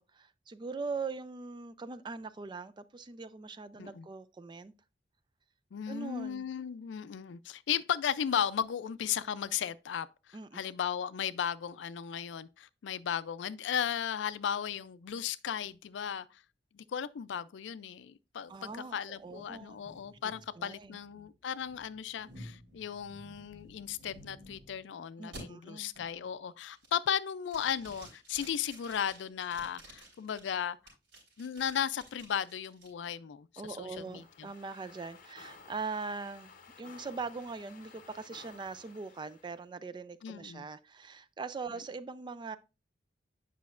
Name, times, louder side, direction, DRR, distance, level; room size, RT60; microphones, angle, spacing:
voice 1, 0.0-4.7 5.9-6.4 10.3-10.6 18.5-19.8 20.2-21.0 25.2-25.9 33.6-42.6, right 4 dB, 25° right, 0.3 m, -41 dB
voice 2, 5.7-16.4 16.7-30.8 31.4-34.5 40.2-40.6 41.7-41.8, left 8 dB, 80° left, 0.4 m, -36 dB
sound 1, 18.5-24.8 25.3-25.4 25.9-26.3 26.7-27.1 27.5-30.4 30.9-32.9, equal, 80° right, 4.1 m, -53 dB
sound 2, 33.9-39.6, left 5 dB, 45° left, 0.7 m, -55 dB
8.3 x 5.7 x 2.4 m
head